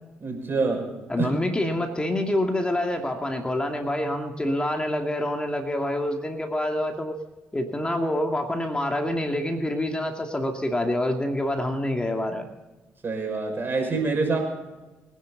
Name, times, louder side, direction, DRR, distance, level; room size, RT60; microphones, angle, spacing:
voice 1, 0.2-0.9 1.2-1.3 13.0-14.4, right 4 dB, 45° right, 3 dB, 6.2 m, -26 dB
voice 2, 1.1-7.2 7.5-12.5, left 1 dB, 20° left, 3 dB, 2.5 m, -26 dB
24.5 x 10.5 x 4.1 m, 1.1 s
hypercardioid pair, 45°, 5 cm